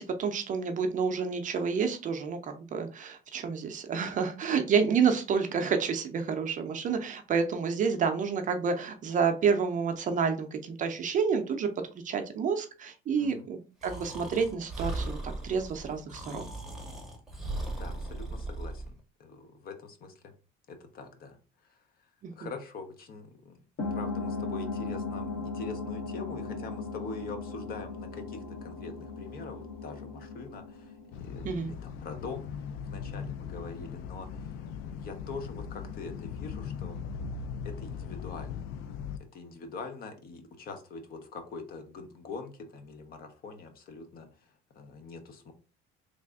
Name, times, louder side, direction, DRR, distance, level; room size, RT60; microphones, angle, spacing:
voice 1, 0.0-11.7 12.0-16.5 22.2-22.5 31.4-31.7, right 6 dB, 40° right, 6 dB, 0.6 m, -29 dB
voice 2, 13.2-13.5 17.8-20.1 20.7-21.4 21.7-21.8 22.3-23.6 23.9-30.9 31.2-34.5 34.8-37.1 37.6-38.7 39.3-44.5 44.8-45.5, left 4 dB, 45° left, 7 dB, 0.7 m, -43 dB
Breathing, 13.8-18.9, right 2 dB, ahead, 0.8 m, -38 dB
sound 1, 23.8-31.9, left 3 dB, 65° left, 1.5 m, -37 dB
sound 2, 31.1-39.2, left 6 dB, 80° left, 0.4 m, -39 dB
3.3 x 2.5 x 3.5 m, 0.34 s
cardioid pair, 135°, 21 cm